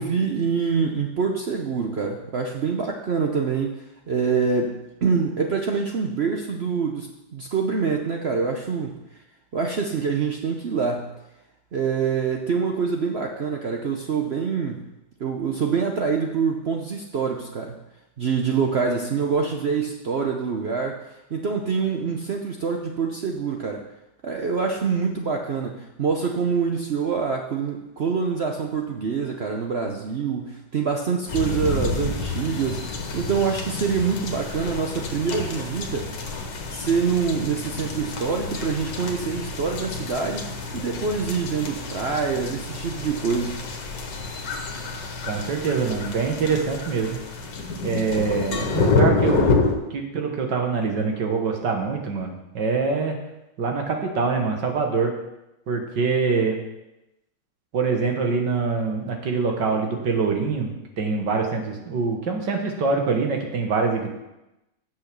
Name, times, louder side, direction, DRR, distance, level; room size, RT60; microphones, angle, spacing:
voice 1, 0.0-9.0 9.5-11.1 11.7-14.8 15.2-17.7 18.2-21.0 21.3-23.8 24.2-36.1 36.7-40.4 40.7-43.6, right 5 dB, 90° right, 2 dB, 0.5 m, -25 dB
sound 1, 31.3-49.8, left 3 dB, 65° left, 1.8 m, -28 dB
voice 2, 45.3-47.2 47.8-49.6 49.9-53.2 53.6-55.1 55.7-56.6 57.7-64.1, right 4 dB, 60° right, 2 dB, 2.0 m, -24 dB
8.3 x 6.8 x 6.7 m, 0.94 s
omnidirectional pair, 2.2 m